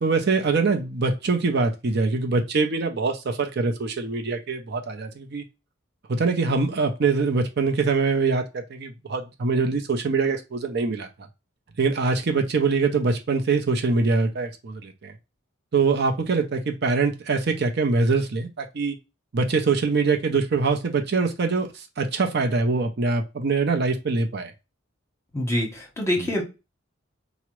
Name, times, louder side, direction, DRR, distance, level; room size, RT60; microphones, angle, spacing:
voice 1, 0.0-5.4 6.1-11.1 11.8-15.1 15.7-19.0 19.3-24.5, right 4 dB, 55° right, 3 dB, 0.6 m, -23 dB
voice 2, 25.3-26.4, left 1 dB, 15° left, 2 dB, 0.9 m, -25 dB
4.7 x 2.0 x 3.0 m, 0.26 s
head